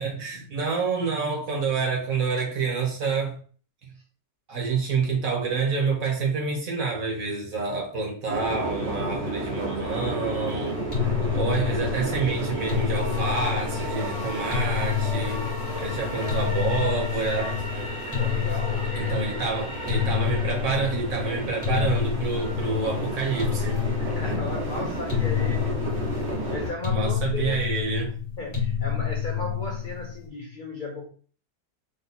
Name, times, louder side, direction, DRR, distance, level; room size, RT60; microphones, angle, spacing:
voice 1, 0.0-3.4 4.5-10.8 11.3-15.4 15.8-17.6 18.9-23.8 26.9-28.2, right 4 dB, 55° right, 1.4 m, -28 dB
sound 1, 8.3-26.7, right 1 dB, 85° right, 1.9 m, -32 dB
sound 2, 10.9-30.2, left 8 dB, 20° left, 1.2 m, -28 dB
voice 2, 18.1-19.2 23.9-27.7 28.4-31.1, left 2 dB, 70° left, 0.4 m, -36 dB
3.9 x 2.5 x 4.1 m
omnidirectional pair, 1.9 m